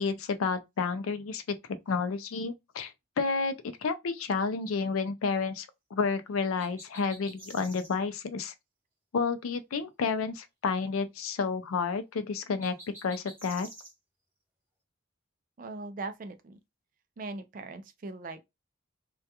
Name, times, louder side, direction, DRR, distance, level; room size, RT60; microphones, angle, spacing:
voice 1, 0.0-1.6 1.9-3.5 3.8-8.5 9.1-12.7 13.0-13.7, left 5 dB, 90° left, 0.4 m, -30 dB
sound 1, 6.6-8.0 12.6-13.9, right 1 dB, 10° right, 0.8 m, -49 dB
voice 2, 15.6-16.6 17.2-18.4, right 3 dB, 40° right, 0.3 m, -40 dB
2.3 x 2.2 x 2.8 m
head